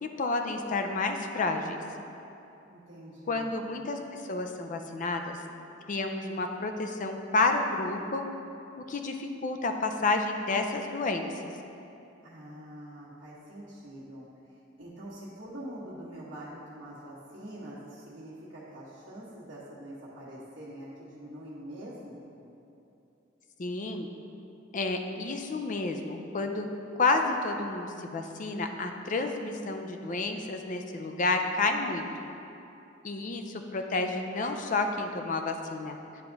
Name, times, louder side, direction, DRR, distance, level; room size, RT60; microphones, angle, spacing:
voice 1, 0.0-1.8 3.3-5.4 5.9-8.3 8.9-11.5 23.6-24.1 24.7-26.7 27.0-32.1 33.0-36.0, left 3 dB, 45° left, 5 dB, 0.5 m, -30 dB
voice 2, 2.7-3.5 12.2-14.3 14.8-22.3, right 1 dB, 80° right, -12 dB, 1.2 m, -44 dB
9.7 x 3.5 x 3.9 m, 2.8 s
head